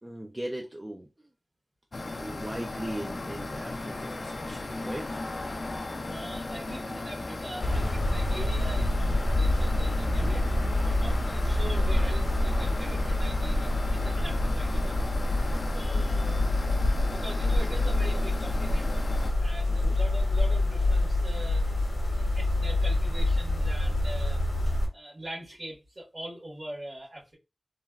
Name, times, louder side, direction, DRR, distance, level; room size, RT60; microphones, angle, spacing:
voice 1, 0.0-1.3 2.2-5.1 10.2-11.5 19.7-20.0, right 1 dB, 20° right, 0.4 m, -39 dB
sound 1, 1.9-19.3, left 2 dB, 65° left, 0.4 m, -37 dB
voice 2, 6.1-10.4 10.8-15.0 15.7-16.4 17.1-21.7 22.1-24.4 24.7-27.3, right 1 dB, 35° right, 1.4 m, -42 dB
sound 2, 7.6-24.9, left 1 dB, 80° left, 0.9 m, -26 dB
3.2 x 2.3 x 2.3 m
wide cardioid pair, 80°, 0 cm